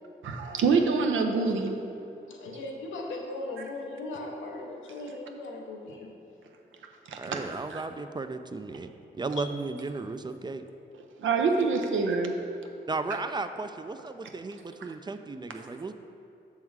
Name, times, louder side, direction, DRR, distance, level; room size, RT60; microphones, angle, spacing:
voice 1, 0.2-1.8 7.1-7.4 7.7-7.8 11.2-12.3, right 4 dB, 80° right, 4 dB, 0.6 m, -26 dB
voice 2, 2.3-6.2 9.3-9.5, left 2 dB, 85° left, 0 dB, 0.7 m, -38 dB
voice 3, 7.2-10.7 12.9-15.9, right 3 dB, 20° right, 9 dB, 0.4 m, -35 dB
6.2 x 3.7 x 4.6 m, 2.7 s
supercardioid pair, 45°, 20 cm